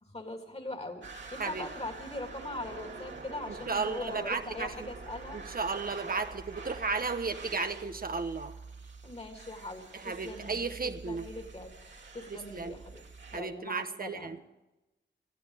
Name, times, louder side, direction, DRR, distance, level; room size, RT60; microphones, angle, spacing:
voice 1, 0.0-5.4 9.0-11.7 12.1-13.0 13.3-14.4, left 2 dB, 35° left, 4 dB, 3.0 m, -41 dB
sound 1, 1.0-13.4, right 4 dB, 80° right, 2.4 m, -46 dB
voice 2, 3.5-4.9 5.3-8.5 9.9-11.3 12.3-12.7 13.3-14.4, right 4 dB, 50° right, 8 dB, 1.0 m, -34 dB
20.0 x 13.0 x 4.9 m, 1.0 s
cardioid pair, 60°, 19 cm